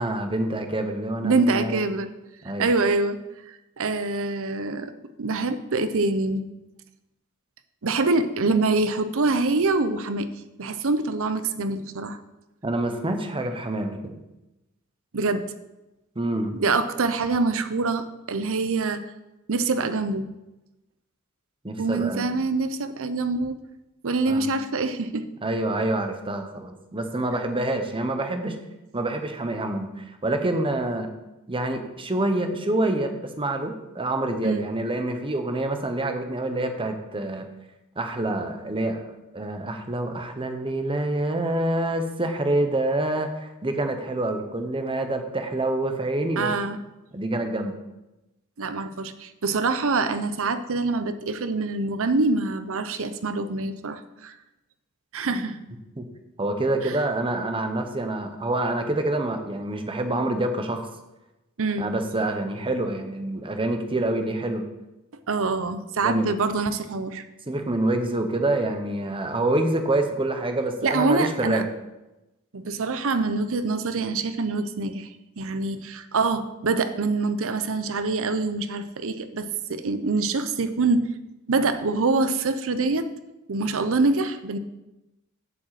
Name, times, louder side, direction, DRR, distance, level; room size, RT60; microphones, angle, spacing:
voice 1, 0.0-1.8 2.4-2.7 12.6-14.1 16.2-16.6 21.6-22.3 24.3-24.5 25.4-28.6 28.9-31.1 31.5-37.5 38.0-39.0 39.3-46.5 47.1-47.8 55.3-55.4 56.0-56.1 56.4-60.9 61.8-64.6 66.0-66.3 67.5-71.7, right 1 dB, 25° right, 6 dB, 1.0 m, -27 dB
voice 2, 1.2-2.1 2.6-3.2 3.5-4.9 5.2-6.4 7.8-10.3 10.6-12.2 15.1-15.4 16.6-19.0 19.5-20.3 21.8-23.6 24.0-25.3 34.4-34.6 46.4-46.8 48.6-54.3 55.1-55.6 56.8-57.0 61.6-61.9 65.3-67.2 70.8-71.6 72.5-75.1 75.4-81.1 81.5-83.1 83.5-84.6, right 3 dB, 65° right, 10 dB, 0.7 m, -25 dB
8.0 x 5.4 x 7.6 m, 0.98 s
head